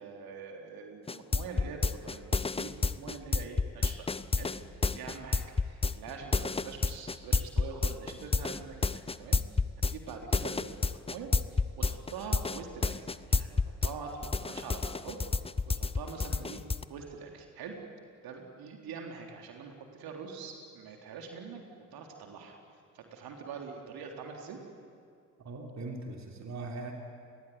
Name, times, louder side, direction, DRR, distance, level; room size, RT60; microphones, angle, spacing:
voice 1, 0.0-4.1 4.4-4.5 4.9-9.6 9.9-10.8 11.1-15.3 15.7-16.6 16.9-17.7 18.2-21.6 21.9-22.6 22.9-24.6, right 5 dB, 55° right, 2 dB, 3.8 m, -44 dB
sound 1, 1.1-13.9 14.2-16.8, left 4 dB, 15° left, 0.8 m, -29 dB
voice 2, 25.4-26.9, right 2 dB, 40° right, 1 dB, 3.5 m, -40 dB
27.5 x 20.5 x 9.7 m, 2.3 s
figure-of-eight pair, 50°, 43 cm